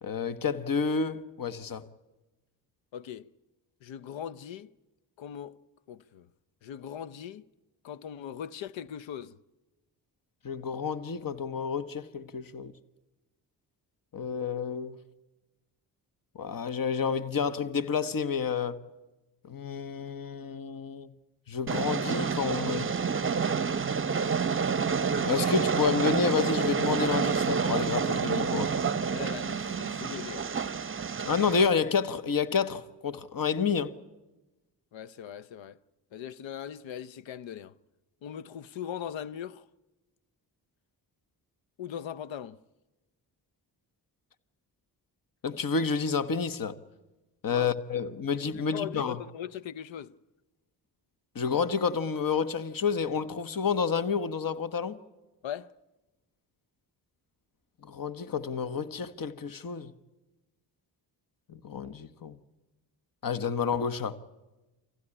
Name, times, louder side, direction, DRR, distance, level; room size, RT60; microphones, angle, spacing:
voice 1, 0.0-1.8 10.4-12.7 14.1-15.0 16.3-18.8 19.5-21.1 21.5-22.9 25.2-28.7 31.2-33.9 45.4-46.8 47.4-49.2 51.3-55.0 57.9-59.9 61.5-62.4 63.2-64.2, left 6 dB, 45° left, 1.2 m, -29 dB
voice 2, 2.9-3.3 3.8-4.7 5.2-5.6 5.9-6.3 6.6-7.5 7.8-9.4 29.0-30.5 34.9-35.8 36.1-37.7 38.2-39.7 41.8-42.6 47.5-47.7 48.6-50.1 55.4-55.7, left 9 dB, 75° left, 0.7 m, -40 dB
Train, 21.7-31.7, right 5 dB, 25° right, 0.8 m, -28 dB
25.0 x 15.5 x 9.8 m
supercardioid pair, 40°, 46 cm